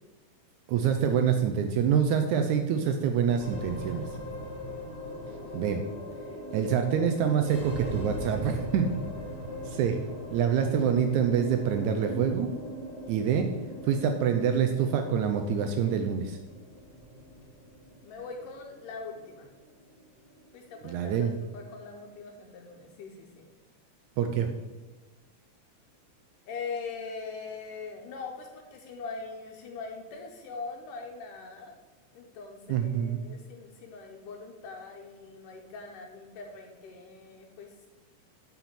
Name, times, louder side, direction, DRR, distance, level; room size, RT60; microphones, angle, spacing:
voice 1, 0.7-4.1 5.5-5.8 6.5-8.9 9.7-10.0 10.3-12.5 13.1-13.5 13.8-16.4 20.8-21.4 24.2-24.5 32.7-33.2, right 7 dB, 80° right, 5 dB, 1.8 m, -26 dB
sound 1, 3.4-21.9, equal, 15° left, 2.6 m, -40 dB
voice 2, 5.3-5.8 18.0-19.5 20.5-23.5 26.5-31.8 32.1-37.7, left 4 dB, 80° left, 2 dB, 2.3 m, -42 dB
5.9 x 5.9 x 7.0 m, 1.3 s
omnidirectional pair, 3.8 m